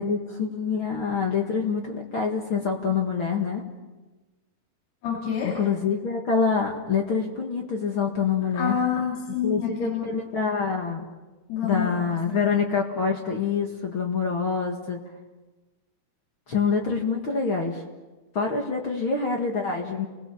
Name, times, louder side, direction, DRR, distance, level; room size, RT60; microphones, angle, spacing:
voice 1, 0.0-3.6 5.4-8.8 9.4-11.0 11.6-15.0 16.5-17.8 18.3-20.1, left 5 dB, 45° left, 2 dB, 1.8 m, -26 dB
voice 2, 5.0-5.6 8.5-10.0 11.5-12.4, left 7 dB, 80° left, 0 dB, 4.9 m, -28 dB
30.0 x 21.0 x 7.1 m, 1.2 s
omnidirectional pair, 4.6 m